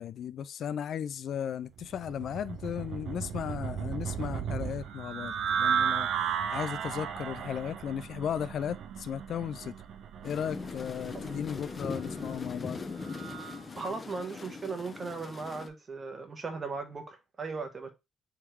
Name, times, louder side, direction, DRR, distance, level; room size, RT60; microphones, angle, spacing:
voice 1, 0.0-6.1 6.5-9.8 10.2-12.8, left 8 dB, 65° left, 0.3 m, -35 dB
sound 1, 1.8-13.7, right 8 dB, 75° right, 0.6 m, -35 dB
sound 2, 10.2-15.7, left 4 dB, 35° left, 0.6 m, -40 dB
voice 2, 13.8-17.9, right 4 dB, 35° right, 1.1 m, -37 dB
3.6 x 3.1 x 4.5 m
cardioid pair, 90°, 0 cm